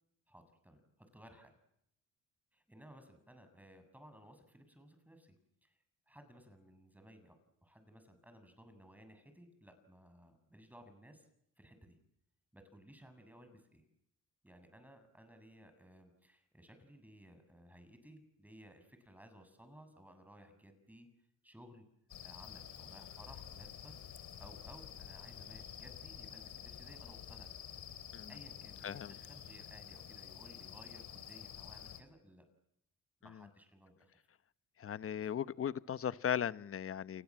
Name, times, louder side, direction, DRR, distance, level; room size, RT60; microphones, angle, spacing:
voice 1, 0.3-1.5 2.5-5.3 5.6-5.8 6.1-11.3 11.6-12.0 12.5-13.8 14.4-21.1 21.4-21.9 22.2-27.6 28.3-32.5 33.2-34.2 35.1-35.3, equal, 5° right, 8 dB, 7.3 m, -58 dB
sound 1, 22.1-32.0, left 9 dB, 75° left, 3.5 m, -50 dB
voice 2, 28.8-29.1 34.8-37.2, left 9 dB, 45° left, 15 dB, 1.0 m, -37 dB
29.5 x 24.0 x 7.6 m, 0.74 s
cardioid pair, 90°, 30 cm